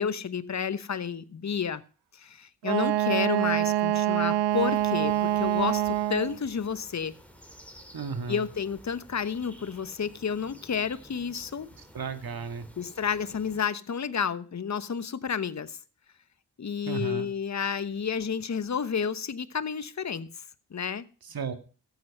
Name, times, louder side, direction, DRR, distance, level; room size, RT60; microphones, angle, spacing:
voice 1, 0.0-1.8 2.1-7.1 8.3-11.7 12.8-15.8 16.6-20.4 20.7-21.1, left 6 dB, 40° left, 1.0 m, -31 dB
Wind instrument woodwind instrument, 2.6-6.4, right 14 dB, 90° right, 0.6 m, -25 dB
sound 1, 4.5-13.6, equal, 5° left, 3.2 m, -52 dB
voice 2, 7.9-8.5 11.9-12.7 16.8-17.3 21.2-21.5, right 5 dB, 60° right, 2.0 m, -34 dB
14.0 x 7.9 x 5.5 m
supercardioid pair, 40°, 41 cm